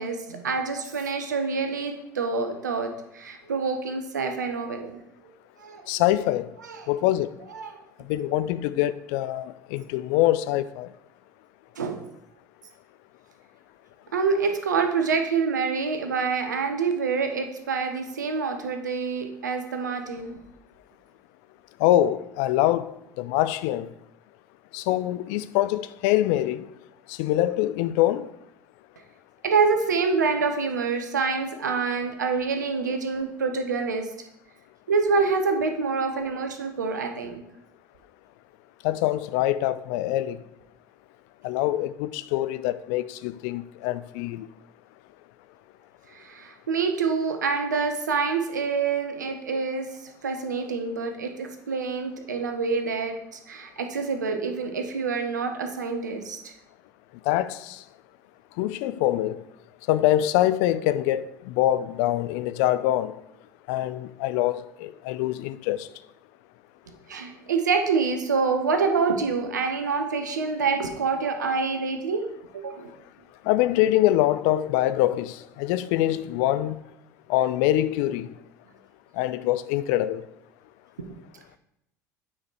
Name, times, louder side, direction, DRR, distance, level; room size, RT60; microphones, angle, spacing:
voice 1, 0.0-5.0 5.6-5.8 6.6-6.8 7.5-7.8 11.8-12.0 14.1-20.4 29.4-34.1 34.9-37.4 46.1-49.9 50.2-53.2 53.5-56.4 67.1-72.2 72.5-72.9, right 5 dB, 80° right, 0.9 m, -26 dB
voice 2, 5.9-6.5 6.9-7.3 8.1-10.9 21.8-23.9 24.7-26.7 27.1-28.3 38.8-40.4 41.4-44.5 57.3-57.8 58.6-59.4 59.9-63.1 63.7-65.9 73.4-76.8 77.3-78.3 79.1-80.2, left 14 dB, 60° left, 0.4 m, -24 dB
8.7 x 4.7 x 4.7 m
figure-of-eight pair, 65°, 9 cm